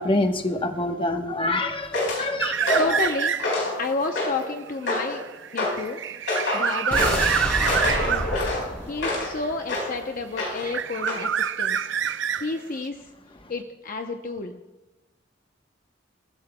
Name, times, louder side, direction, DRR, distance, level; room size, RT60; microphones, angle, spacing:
voice 1, 0.0-2.8, left 1 dB, 30° left, 5 dB, 1.0 m, -25 dB
sound 1, 1.9-2.2 2.7-3.0 3.4-3.8 4.1-4.5 4.9-5.2 5.6-5.8 6.3-6.7 7.0-7.3 7.6-9.3 9.7-9.9 10.4-10.7 11.1-11.2, left 2 dB, 90° left, 4.6 m, -27 dB
sound 2, 2.4-3.7 4.1-8.4 9.4-10.2 10.4-12.9, right 8 dB, 70° right, 0.6 m, -27 dB
voice 2, 2.8-3.4 3.8-5.2 5.5-6.0 6.5-7.3 7.8-8.3 8.9-11.9 12.4-13.1 13.5-14.6, left 3 dB, 45° left, 4 dB, 0.7 m, -30 dB
sound 3, 6.9-10.0 10.4-10.5, equal, 10° left, 3.6 m, -30 dB
23.0 x 15.0 x 2.2 m, 1.1 s
head